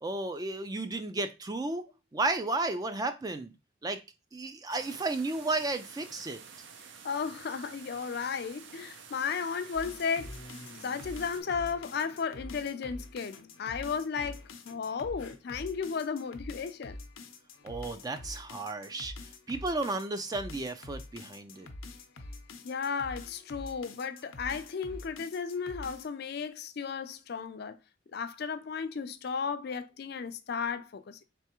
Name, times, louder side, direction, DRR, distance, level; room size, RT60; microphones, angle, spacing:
voice 1, 0.0-1.9 2.1-3.5 3.8-4.0 4.3-6.4 17.6-19.1 19.5-21.7, right 2 dB, 20° right, 0.3 m, -33 dB
sound 1, 4.7-11.4, right 6 dB, 65° right, 0.5 m, -50 dB
voice 2, 7.0-10.3 10.8-17.0 22.6-27.8 28.1-31.2, left 6 dB, 55° left, 0.4 m, -34 dB
sound 2, 9.7-26.2, left 2 dB, 85° left, 0.7 m, -46 dB
3.9 x 3.4 x 2.9 m
head